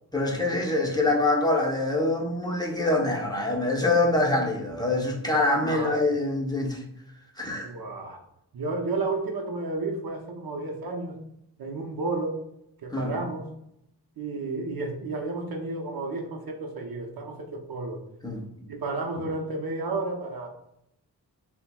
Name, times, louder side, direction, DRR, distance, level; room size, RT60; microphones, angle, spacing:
voice 1, 0.1-6.8 7.4-7.7 12.9-13.1 18.2-18.4, left 2 dB, 10° left, -1 dB, 0.9 m, -25 dB
voice 2, 5.6-6.0 7.6-8.2 8.5-11.2 11.6-12.4 12.8-13.5 14.2-18.0 18.7-20.5, right 3 dB, 60° right, 2 dB, 0.8 m, -32 dB
5.4 x 2.2 x 2.3 m, 0.78 s
cardioid pair, 45°, 41 cm